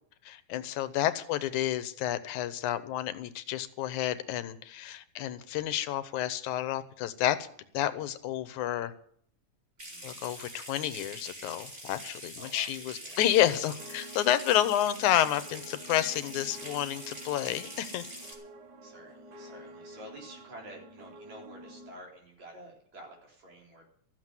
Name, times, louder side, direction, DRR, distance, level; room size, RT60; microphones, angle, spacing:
voice 1, 0.3-7.5 7.7-8.9 10.0-18.0, left 12 dB, 90° left, 13 dB, 2.3 m, -30 dB
Water tap faucet / Sink (filling or washing) / Trickle dribble, 9.8-18.3, right 1 dB, 15° right, 3.1 m, -44 dB
voice 2, 9.8-10.2 12.4-12.7 13.0-13.2 18.8-23.9, right 1 dB, 70° right, -1 dB, 5.1 m, -50 dB
sound 1, 13.8-21.9, right 1 dB, 50° right, 1.3 m, -49 dB
14.0 x 7.5 x 9.5 m, 0.62 s
omnidirectional pair, 3.4 m